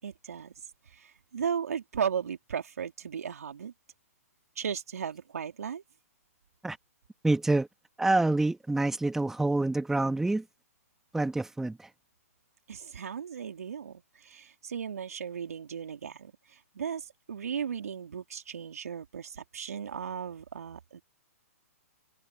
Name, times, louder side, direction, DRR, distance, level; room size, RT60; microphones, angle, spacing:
voice 1, 0.0-0.5 0.9-3.7 4.6-5.8 12.7-21.0, right 7 dB, 75° right, 3.6 m, -36 dB
voice 2, 7.2-7.7 8.0-10.4 11.1-11.9, right 2 dB, 5° right, 1.7 m, -27 dB
open air
hypercardioid pair, 120°, 8 cm